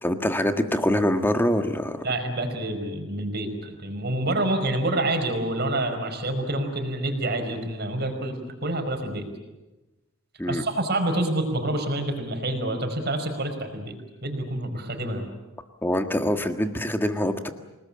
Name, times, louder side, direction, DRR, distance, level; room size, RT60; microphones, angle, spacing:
voice 1, 0.0-2.1 10.4-10.6 15.8-17.5, left 1 dB, 10° left, 7 dB, 1.6 m, -24 dB
voice 2, 2.0-9.3 10.5-14.0 14.2-15.3, right 1 dB, 50° right, 5 dB, 5.0 m, -27 dB
28.5 x 20.0 x 8.7 m, 1.1 s
head